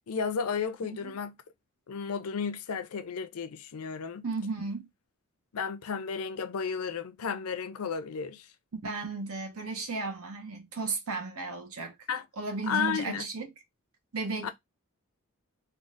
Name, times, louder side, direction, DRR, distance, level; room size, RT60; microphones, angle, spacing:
voice 1, 0.1-1.3 1.9-4.2 5.5-8.5 12.1-12.2 12.7-13.2 14.4-14.5, left 6 dB, 75° left, 0.5 m, -33 dB
voice 2, 0.8-1.1 4.2-4.9 8.8-11.9 12.4-13.5 14.1-14.5, right 3 dB, 80° right, 0.9 m, -34 dB
3.7 x 2.4 x 2.5 m
head